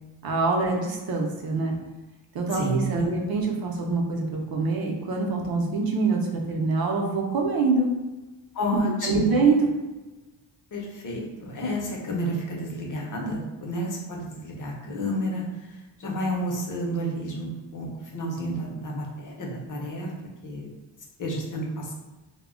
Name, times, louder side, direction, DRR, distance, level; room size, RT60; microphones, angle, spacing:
voice 1, 0.2-1.8 2.3-6.2 6.5-7.9 9.0-9.7, right 3 dB, 55° right, 1 dB, 0.5 m, -24 dB
voice 2, 2.5-3.1 8.5-9.3 10.7-20.1 20.4-20.7 21.2-21.9, equal, 45° left, -1 dB, 0.6 m, -31 dB
2.1 x 2.1 x 3.6 m, 1.1 s
wide cardioid pair, 140°, 46 cm